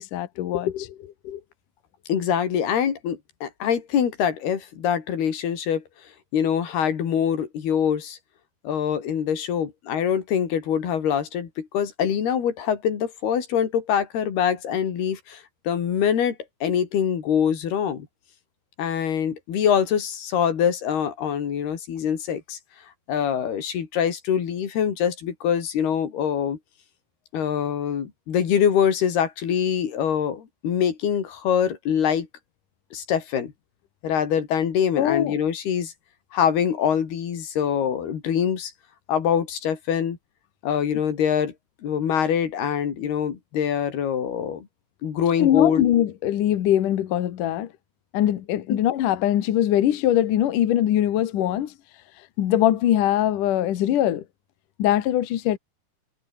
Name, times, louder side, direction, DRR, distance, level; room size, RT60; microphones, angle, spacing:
voice 1, 0.0-1.4 35.0-35.4 45.4-47.7 48.1-51.7 52.4-54.2 54.8-55.6, left 12 dB, 65° left, 2.8 m, -22 dB
voice 2, 2.1-5.8 6.3-8.2 8.6-16.4 16.6-18.1 18.8-22.6 23.1-26.6 27.3-32.3 32.9-33.5 34.0-35.9 36.3-38.7 39.1-40.2 40.6-41.5 41.8-44.7 45.0-45.9 48.7-48.8, left 8 dB, 90° left, 5.0 m, -24 dB
omnidirectional pair, 4.4 m